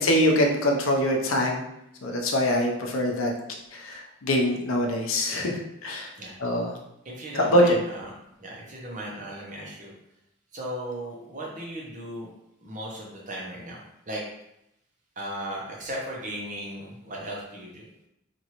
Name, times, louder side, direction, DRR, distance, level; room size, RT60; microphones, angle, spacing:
voice 1, 0.0-1.6 2.0-3.3 3.7-6.1 6.4-6.7 7.5-7.8, equal, 80° left, 1 dB, 0.6 m, -23 dB
voice 2, 7.0-8.1 8.4-9.9 10.5-12.3 12.6-13.8 14.1-14.2 15.2-17.9, right 1 dB, 40° right, -3 dB, 0.7 m, -36 dB
3.0 x 2.5 x 2.9 m, 0.82 s
head